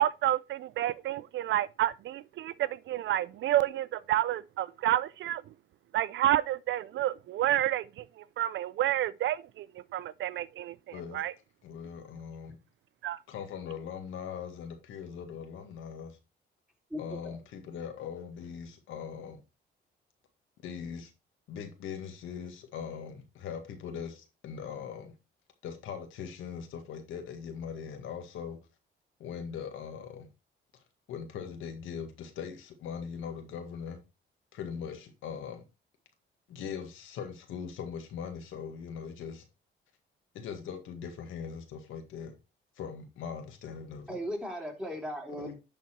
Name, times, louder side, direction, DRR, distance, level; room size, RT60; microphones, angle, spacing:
voice 1, 0.0-5.4 5.9-11.3 13.0-13.2, right 13 dB, 70° right, 0.5 m, -30 dB
voice 2, 11.6-12.6 13.3-16.2 17.0-19.4 20.6-21.1 21.5-25.2 25.6-28.6 29.2-30.3 31.1-34.0 34.5-35.6 36.5-39.4 40.3-42.3 42.8-44.2 45.3-45.5, left 7 dB, 85° left, 1.8 m, -40 dB
voice 3, 16.9-17.4 44.1-45.5, equal, 5° right, 3.3 m, -37 dB
10.5 x 4.1 x 4.4 m
cardioid pair, 90°, 20 cm